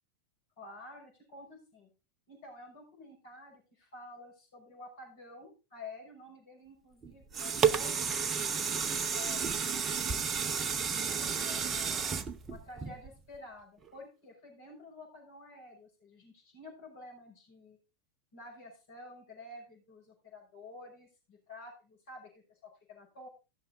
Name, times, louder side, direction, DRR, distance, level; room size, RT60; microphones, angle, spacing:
voice 1, 0.6-1.9 2.3-9.5 10.4-12.2 12.5-17.8 18.3-23.3, left 2 dB, 50° left, -1 dB, 6.0 m, -51 dB
sound 1, 7.0-13.4 13.9-14.0, right 6 dB, 25° right, 0.7 m, -32 dB
16.5 x 6.8 x 3.9 m, 0.30 s
figure-of-eight pair, 90°, 0 cm